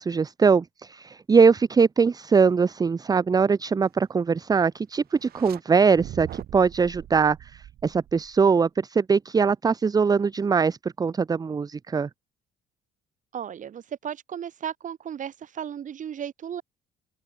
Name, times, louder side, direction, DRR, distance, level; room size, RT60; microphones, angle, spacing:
voice 1, 0.0-12.1, right 5 dB, 20° right, 0.7 m, -22 dB
sound 1, 5.2-5.6 5.9-8.5, right 12 dB, 65° right, 5.9 m, -42 dB
voice 2, 13.3-16.6, right 9 dB, 50° right, 5.1 m, -35 dB
open air
cardioid pair, 110°, 17 cm